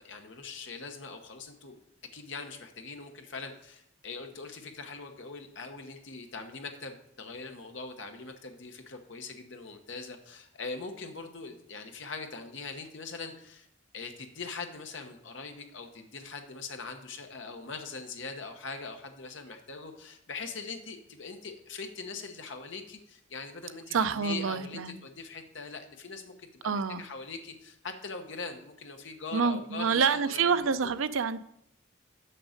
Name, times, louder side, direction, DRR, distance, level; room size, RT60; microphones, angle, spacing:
voice 1, 0.0-1.7 2.1-13.7 13.9-30.9, left 4 dB, 65° left, 5 dB, 1.1 m, -42 dB
voice 2, 23.9-25.0 26.6-27.0 29.3-31.4, right 5 dB, 80° right, 13 dB, 0.5 m, -27 dB
6.7 x 6.3 x 5.2 m, 0.76 s
head